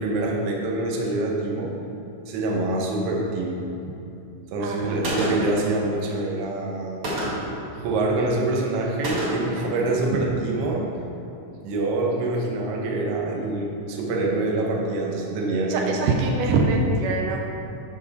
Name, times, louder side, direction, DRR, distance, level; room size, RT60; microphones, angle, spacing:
voice 1, 0.0-1.7 2.3-3.7 4.5-7.0 7.8-10.9 11.6-15.9, right 2 dB, 65° right, -1 dB, 1.6 m, -25 dB
voice 2, 4.6-5.0 7.3-7.4 10.1-10.5 15.7-17.5, right 3 dB, 80° right, 1 dB, 2.1 m, -24 dB
Gunshot gunfire, 5.0-5.6 7.0-7.6 9.0-9.6, right 1 dB, 45° right, 1.9 m, -27 dB
11.5 x 4.5 x 4.1 m, 2.8 s
omnidirectional pair, 3.8 m